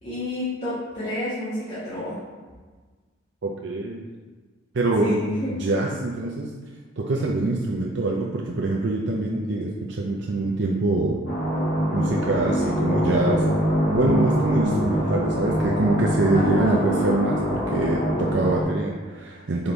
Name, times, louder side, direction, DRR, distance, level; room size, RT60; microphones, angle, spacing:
voice 1, 0.0-2.2 5.0-5.5 16.3-16.9, left 1 dB, 35° left, -12 dB, 1.6 m, -29 dB
voice 2, 3.4-4.1 4.7-5.2 5.5-6.5 7.0-11.2 11.9-13.4 13.9-19.7, right 2 dB, 65° right, -1 dB, 0.5 m, -24 dB
sound 1, 11.3-18.6, equal, 75° left, 1.8 m, -24 dB
5.2 x 4.1 x 4.5 m, 1.4 s
head